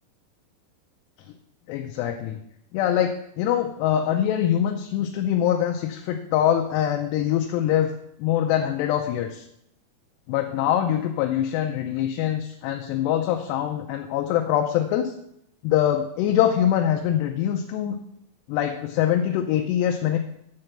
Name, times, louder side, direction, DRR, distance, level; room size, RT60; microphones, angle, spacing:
voice 1, 1.7-2.4 2.7-7.9 8.2-9.4 10.3-15.1 15.6-18.0 18.5-20.2, left 10 dB, 85° left, 3 dB, 2.7 m, -23 dB
7.7 x 5.9 x 7.8 m, 0.78 s
omnidirectional pair, 4.9 m